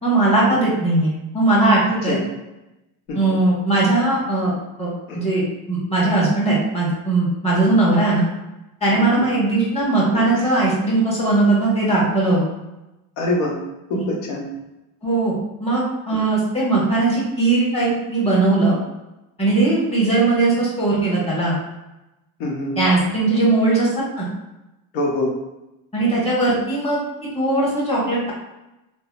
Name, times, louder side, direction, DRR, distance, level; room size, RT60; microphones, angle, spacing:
voice 1, 0.0-2.2 3.1-5.4 5.7-8.2 8.8-12.4 13.9-14.0 15.0-18.8 19.4-21.6 22.8-23.9 24.2-24.3 25.9-27.0 27.3-28.3, right 2 dB, 15° left, -7 dB, 1.4 m, -19 dB
voice 2, 13.2-13.5 13.9-14.0 14.3-14.4 16.1-16.2 22.4-22.8 24.9-25.3, left 2 dB, 80° left, -1 dB, 0.8 m, -24 dB
3.3 x 2.0 x 2.4 m, 0.95 s
cardioid pair, 110°, 40 cm